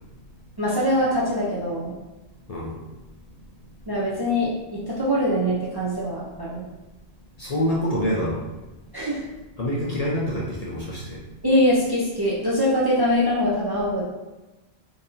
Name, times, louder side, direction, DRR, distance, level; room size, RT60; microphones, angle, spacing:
voice 1, 0.6-2.0 3.9-6.6 8.9-9.2 11.4-14.0, equal, 35° right, -6 dB, 0.4 m, -23 dB
voice 2, 7.4-8.4 9.6-11.2, equal, 50° left, -4 dB, 0.5 m, -26 dB
3.9 x 2.7 x 2.6 m, 1.1 s
omnidirectional pair, 1.1 m